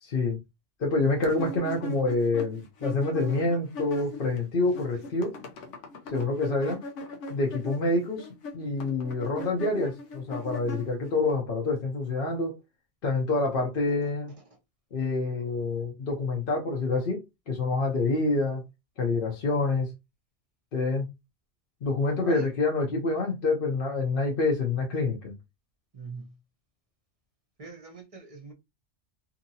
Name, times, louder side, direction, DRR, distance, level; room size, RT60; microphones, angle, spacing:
voice 1, 0.0-0.4 0.8-5.4 6.1-6.8 7.3-8.3 8.5-12.6 13.0-14.3 14.9-18.6 19.0-19.9 20.7-21.0 21.8-25.3, left 3 dB, 55° left, 0.9 m, -27 dB
sound 1, 1.2-4.4 4.6-11.3, left 1 dB, 85° left, 1.0 m, -39 dB
voice 2, 22.2-22.5 25.9-26.3 27.6-28.5, right 3 dB, 35° right, 0.7 m, -42 dB
2.8 x 2.8 x 2.7 m
omnidirectional pair, 1.2 m